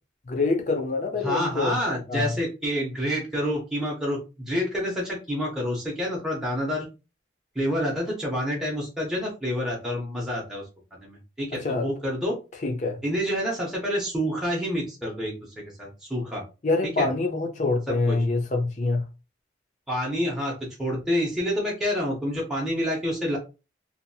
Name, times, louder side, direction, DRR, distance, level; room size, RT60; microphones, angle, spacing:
voice 1, 0.3-1.8 2.1-2.3 11.6-11.9 12.6-13.0 16.6-19.0, left 3 dB, 40° left, 0.6 m, -25 dB
voice 2, 1.2-6.9 7.5-10.6 10.9-12.4 13.0-16.4 16.8-17.1 17.9-18.2 19.9-20.5 20.8-23.4, equal, 5° right, 0.7 m, -28 dB
2.7 x 2.5 x 2.6 m
head